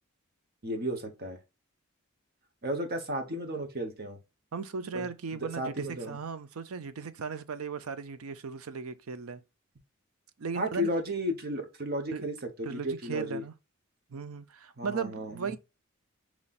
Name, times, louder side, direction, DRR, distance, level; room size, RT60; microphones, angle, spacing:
voice 1, 0.6-1.4 2.6-4.2 4.9-6.2 10.5-13.4 14.8-15.6, equal, 45° right, 1.0 m, -34 dB
voice 2, 4.5-9.4 10.4-10.9 12.1-12.3 12.7-13.5 14.1-15.6, right 5 dB, 85° right, 0.5 m, -37 dB
5.5 x 3.1 x 2.4 m
head